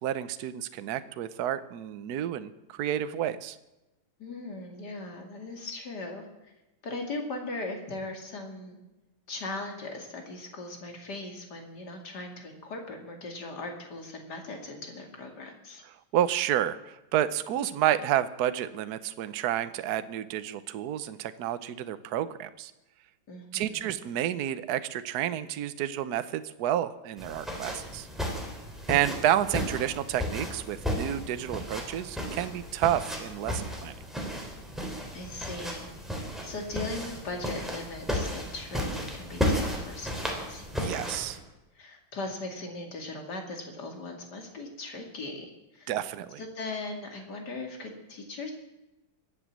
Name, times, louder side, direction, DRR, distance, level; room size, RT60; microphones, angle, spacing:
voice 1, 0.0-3.6 16.1-22.7 23.5-28.1 28.9-33.9 40.8-41.4 45.9-46.4, right 11 dB, 60° right, 12 dB, 1.1 m, -30 dB
voice 2, 4.2-6.5 6.8-8.8 9.3-15.8 23.3-23.9 35.1-41.2 41.7-45.9 46.4-48.5, left 2 dB, 55° left, 3 dB, 2.9 m, -39 dB
sound 1, 27.2-41.4, equal, ahead, 3.2 m, -34 dB
23.0 x 8.3 x 7.4 m, 1.0 s
omnidirectional pair, 2.2 m